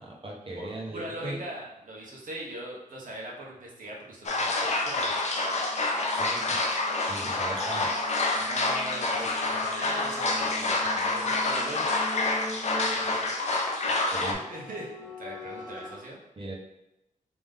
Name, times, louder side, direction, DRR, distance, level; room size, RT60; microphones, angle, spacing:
voice 1, 0.0-1.4 6.2-6.6 7.1-7.9 14.1-14.4 16.4-16.5, right 2 dB, 40° right, -2 dB, 1.1 m, -38 dB
voice 2, 0.6-5.2 8.4-11.9 14.1-16.2, right 1 dB, 70° right, -3 dB, 1.2 m, -40 dB
sound 1, 4.2-14.3, left 2 dB, 50° left, 0.7 m, -28 dB
sound 2, 5.3-16.0, equal, 5° right, 1.2 m, -42 dB
3.6 x 3.0 x 3.6 m, 0.89 s
cardioid pair, 65°, 14 cm